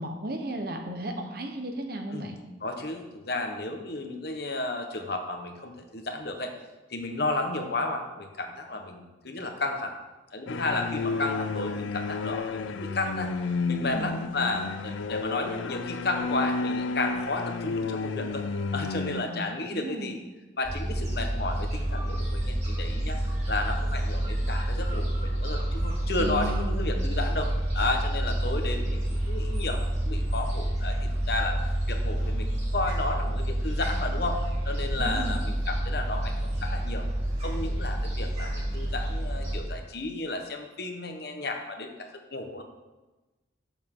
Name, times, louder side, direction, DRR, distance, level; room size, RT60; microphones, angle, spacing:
voice 1, 0.0-2.4 13.9-14.3 19.1-20.1 26.2-26.9 35.0-35.4, right 1 dB, 50° right, 4 dB, 1.1 m, -35 dB
voice 2, 2.6-6.5 6.9-9.9 10.3-13.3 13.7-18.4 18.7-20.2 20.6-32.5 32.7-34.4 34.6-37.1 37.4-42.6, left 2 dB, 55° left, 4 dB, 1.2 m, -33 dB
sound 1, 10.5-19.2, left 4 dB, 85° left, 0.5 m, -31 dB
Gull seagull, 20.6-39.6, right 1 dB, 35° right, 2.5 m, -29 dB
12.5 x 7.2 x 3.8 m, 1.1 s
head